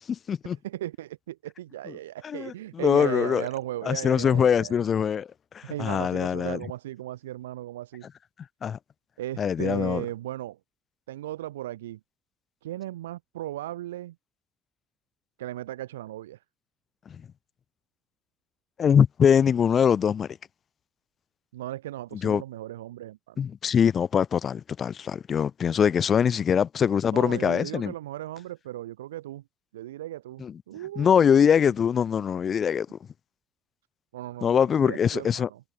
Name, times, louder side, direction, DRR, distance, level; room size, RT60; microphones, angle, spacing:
voice 1, 0.0-0.6 2.2-3.5 3.8-5.3 5.5-6.6 8.6-8.8 9.4-10.0 17.1-17.2 18.8-20.3 22.2-22.4 23.4-27.9 30.4-30.5 31.0-32.9 34.4-35.5, left 7 dB, 45° left, 1.2 m, -23 dB
voice 2, 0.6-4.8 5.6-8.1 9.2-10.6 11.1-12.0 12.6-14.1 15.4-16.4 21.5-23.4 27.1-29.4 29.7-31.5 34.1-35.6, right 14 dB, 75° right, 1.5 m, -36 dB
figure-of-eight pair, 45°, 0 cm